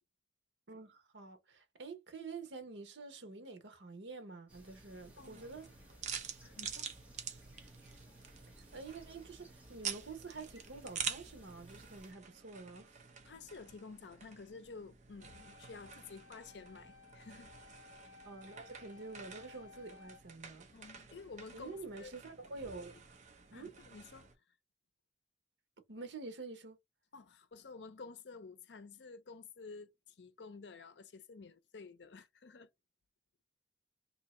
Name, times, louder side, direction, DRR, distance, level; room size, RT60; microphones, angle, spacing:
voice 1, 0.7-5.7 8.5-13.0 18.2-20.7 21.5-22.9 23.5-23.7 25.9-26.8, right 3 dB, 85° right, 0.9 m, -48 dB
sound 1, 4.5-12.1, right 1 dB, 10° right, 1.2 m, -58 dB
sound 2, 4.9-24.3, right 7 dB, 40° right, 0.7 m, -48 dB
voice 2, 6.4-6.9 13.2-17.5 20.7-22.1 23.4-24.3 27.1-32.7, left 4 dB, 75° left, 0.6 m, -51 dB
sound 3, 15.2-20.2, left 4 dB, 25° left, 1.6 m, -59 dB
2.8 x 2.8 x 4.2 m
head